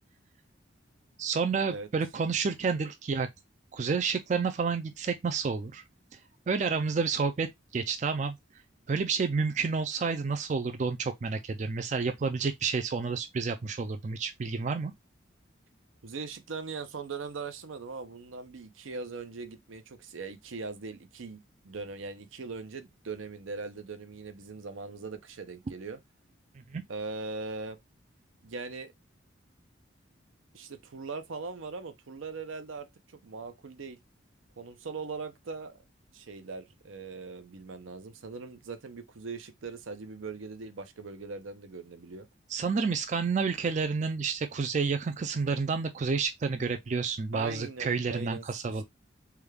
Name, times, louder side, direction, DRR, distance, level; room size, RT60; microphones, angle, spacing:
voice 1, 1.2-3.3 3.7-5.8 6.5-8.4 8.9-14.9 26.7-26.8 42.5-48.8, right 5 dB, 35° right, 0.3 m, -30 dB
voice 2, 16.0-26.0 26.9-27.8 28.4-28.9 30.5-32.9 33.2-34.0 34.6-35.8 36.1-42.3 47.3-48.8, right 4 dB, 85° right, 0.6 m, -40 dB
3.4 x 2.3 x 3.2 m
head